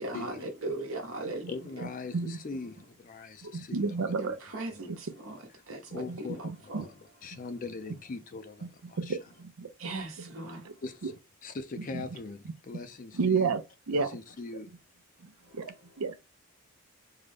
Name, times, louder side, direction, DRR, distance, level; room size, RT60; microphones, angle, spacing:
voice 1, 0.0-1.5 1.8-1.9 4.2-6.9 7.3-7.4 9.8-10.8 15.4-16.0, right 2 dB, 70° right, 1.0 m, -39 dB
voice 2, 1.5-4.4 5.9-6.5 6.8-6.9 7.2-9.2 10.8-11.1 11.4-13.5 13.9-14.7, left 3 dB, 40° left, 0.4 m, -41 dB
voice 3, 3.4-4.3 6.1-6.2 6.7-6.8 9.0-9.7 11.0-11.1 13.1-13.6 13.9-14.1 15.2-16.1, right 5 dB, 90° right, 0.6 m, -30 dB
3.7 x 2.1 x 3.3 m
head